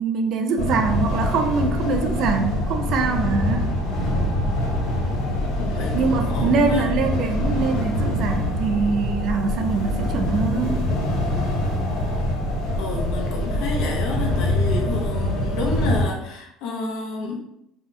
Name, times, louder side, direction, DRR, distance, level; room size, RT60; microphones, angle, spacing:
voice 1, 0.0-3.7 5.9-10.9, right 4 dB, 40° right, 5 dB, 0.3 m, -23 dB
sound 1, 0.6-16.0, left 1 dB, 90° left, 1.2 m, -24 dB
voice 2, 5.6-6.9 12.8-17.4, left 3 dB, 60° left, 1 dB, 0.7 m, -30 dB
2.8 x 2.3 x 3.9 m, 0.80 s
cardioid pair, 180°, 0 cm